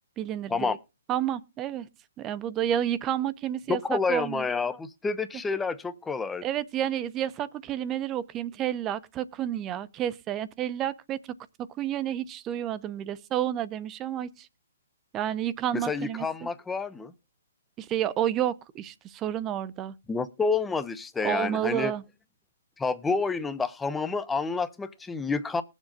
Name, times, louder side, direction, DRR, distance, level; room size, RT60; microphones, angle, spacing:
voice 1, 0.2-0.8 1.1-1.9 2.2-4.5 6.4-11.2 11.8-14.5 15.1-16.5 17.8-19.9 21.2-22.0, right 11 dB, 20° right, 0.7 m, -30 dB
voice 2, 3.7-6.4 15.7-17.1 20.1-21.9 22.8-25.6, left 4 dB, 10° left, 0.8 m, -29 dB
20.5 x 7.3 x 2.6 m
hypercardioid pair, 140°, 0 cm